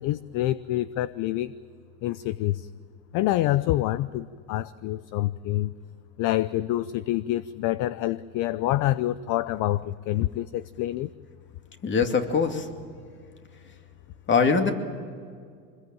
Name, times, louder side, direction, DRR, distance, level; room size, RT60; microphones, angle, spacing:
voice 1, 0.0-1.5 2.0-2.7 3.1-5.7 6.2-11.1, left 15 dB, 50° left, 16 dB, 0.7 m, -27 dB
voice 2, 11.8-12.7 14.3-14.7, left 5 dB, 30° left, 5 dB, 2.6 m, -22 dB
25.5 x 21.5 x 9.0 m, 2.1 s
supercardioid pair, 115°, 41 cm